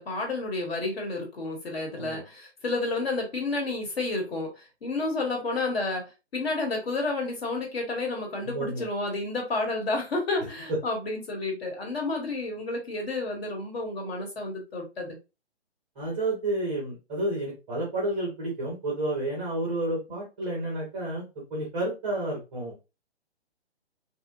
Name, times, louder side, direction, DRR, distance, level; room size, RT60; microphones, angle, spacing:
voice 1, 0.0-15.2, left 2 dB, 60° left, 1.3 m, -31 dB
voice 2, 8.4-8.8 10.7-10.8 16.0-21.2 21.5-22.9, right 1 dB, 10° right, 0.4 m, -30 dB
2.8 x 2.3 x 2.5 m
figure-of-eight pair, 145°, 34 cm